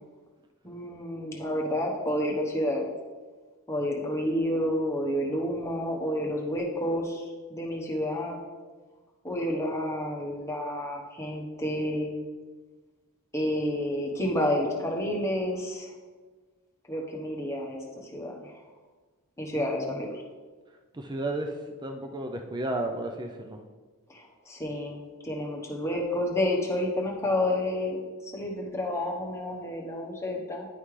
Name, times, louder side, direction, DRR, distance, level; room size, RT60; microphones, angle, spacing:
voice 1, 0.6-2.8 3.7-7.2 7.5-8.4 9.2-12.2 13.3-15.9 16.9-18.6 19.4-20.2 24.1-30.7, left 1 dB, 15° left, -1 dB, 1.1 m, -30 dB
voice 2, 20.9-23.6, right 2 dB, 20° right, 4 dB, 0.4 m, -33 dB
10.0 x 5.5 x 3.2 m, 1.4 s
head